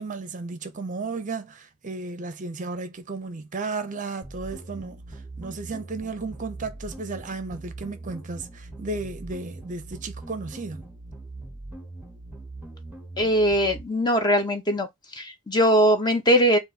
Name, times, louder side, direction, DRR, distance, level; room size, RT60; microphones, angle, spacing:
voice 1, 0.0-10.9, right 3 dB, 35° right, 0.6 m, -34 dB
sound 1, 4.2-13.8, right 2 dB, 10° right, 0.9 m, -41 dB
voice 2, 13.2-14.9 15.2-16.6, equal, 20° left, 0.8 m, -21 dB
4.1 x 2.5 x 3.9 m
head